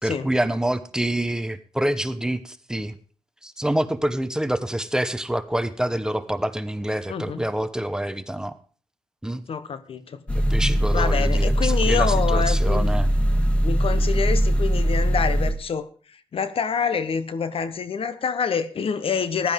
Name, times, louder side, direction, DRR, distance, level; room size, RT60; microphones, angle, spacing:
voice 1, 0.0-3.0 3.4-8.5 9.2-9.4 10.5-13.1, right 1 dB, 5° right, 11 dB, 1.1 m, -26 dB
voice 2, 7.1-7.4 9.5-10.2 10.9-12.9 13.6-19.5, left 6 dB, 70° left, 13 dB, 1.0 m, -27 dB
sound 1, 10.3-15.5, equal, 10° left, 2.5 m, -21 dB
15.0 x 11.5 x 3.7 m, 0.39 s
cardioid pair, 75°, 10 cm